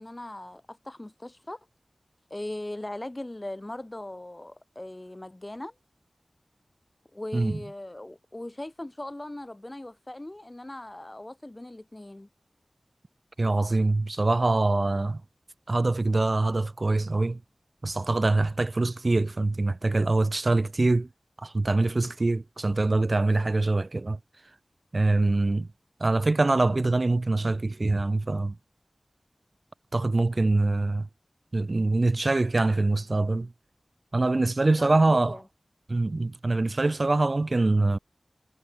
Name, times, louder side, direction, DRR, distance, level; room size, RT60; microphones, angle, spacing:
voice 1, 0.0-1.6 2.3-5.7 7.1-12.3 34.8-35.4, left 1 dB, 25° left, 5.0 m, -39 dB
voice 2, 13.4-15.2 15.7-17.4 17.8-21.1 21.4-24.2 24.9-25.7 26.0-28.5 29.9-31.1 31.5-33.5 34.1-35.4 35.9-38.0, right 2 dB, 50° right, 0.7 m, -24 dB
wide cardioid pair, 65°, 0 cm